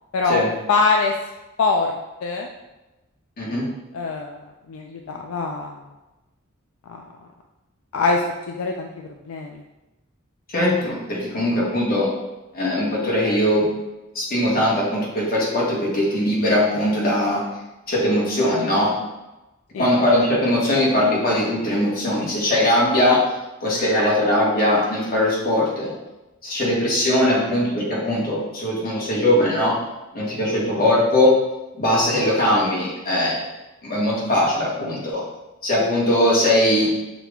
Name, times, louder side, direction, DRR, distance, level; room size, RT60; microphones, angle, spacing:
voice 1, 0.7-1.1 1.6-1.9 2.2-2.5 3.9-4.4 4.7-5.8 6.9-7.0 7.9-9.6 19.7-19.9 26.6-26.8, left 4 dB, 70° left, 2 dB, 0.3 m, -23 dB
voice 2, 3.4-3.7 10.5-12.1 12.5-13.7 14.1-17.4 17.9-18.9 19.8-23.2 23.6-25.9 26.4-29.8 30.1-31.3 31.8-33.4 33.8-35.2 35.6-36.9, left 1 dB, 45° left, -5 dB, 1.3 m, -20 dB
5.8 x 2.3 x 3.5 m, 1.0 s
head